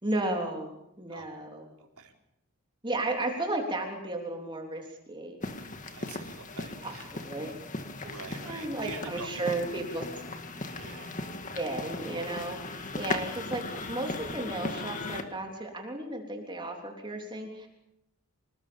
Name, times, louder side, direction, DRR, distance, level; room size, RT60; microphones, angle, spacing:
voice 1, 0.0-1.7 2.8-5.4 6.8-7.5 8.0-10.1 11.5-17.7, right 2 dB, 20° right, 2 dB, 3.5 m, -34 dB
voice 2, 1.8-2.1 5.9-7.1 8.1-9.6 10.8-11.1, right 4 dB, 80° right, 1 dB, 4.5 m, -44 dB
sound 1, 5.4-15.2, left 2 dB, 35° left, 2.0 m, -37 dB
27.5 x 20.0 x 7.2 m, 0.83 s
head